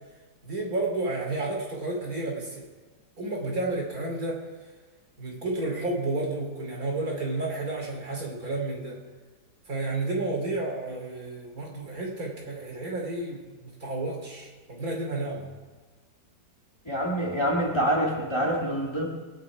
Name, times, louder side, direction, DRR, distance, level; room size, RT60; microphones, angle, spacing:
voice 1, 0.4-2.7 3.2-4.4 5.2-9.0 9.7-15.5, right 2 dB, 55° right, -1 dB, 3.5 m, -31 dB
voice 2, 16.9-19.0, right 1 dB, 15° left, -2 dB, 1.8 m, -26 dB
23.0 x 9.5 x 4.8 m, 1.3 s
omnidirectional pair, 1.8 m